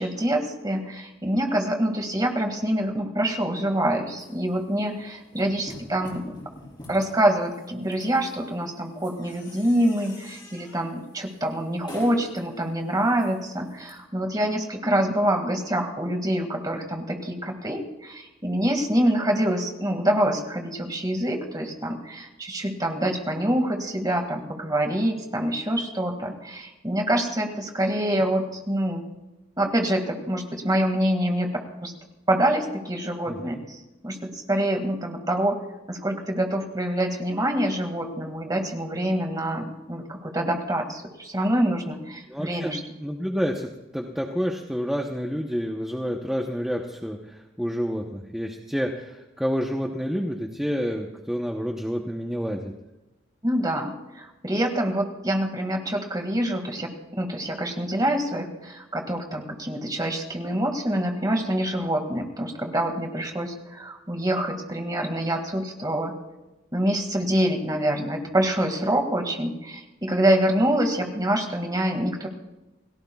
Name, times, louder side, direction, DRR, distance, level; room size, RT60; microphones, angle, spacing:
voice 1, 0.0-6.4 6.9-29.0 29.6-31.9 32.3-35.6 35.9-42.8 53.4-56.9 57.2-66.1 66.7-72.3, right 1 dB, 20° right, 3 dB, 2.1 m, -26 dB
sound 1, 4.1-13.9, left 1 dB, 20° left, 5.7 m, -46 dB
voice 2, 33.3-33.6 42.3-42.7 43.0-52.7, equal, ahead, 1 dB, 0.9 m, -29 dB
29.5 x 17.5 x 2.4 m, 1.0 s
head